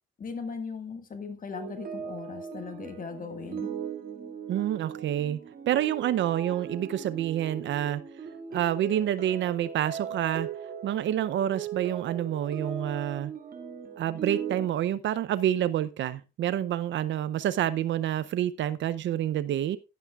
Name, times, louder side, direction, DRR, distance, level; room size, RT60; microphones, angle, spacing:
voice 1, 0.2-3.7, left 5 dB, 45° left, 1.7 m, -38 dB
sound 1, 1.5-14.7, right 7 dB, 45° right, 2.0 m, -39 dB
voice 2, 4.5-5.4 5.7-8.0 8.5-10.5 10.8-13.3 14.0-19.8, right 11 dB, 70° right, 0.6 m, -28 dB
11.5 x 11.5 x 2.3 m
cardioid pair, 90°, 20 cm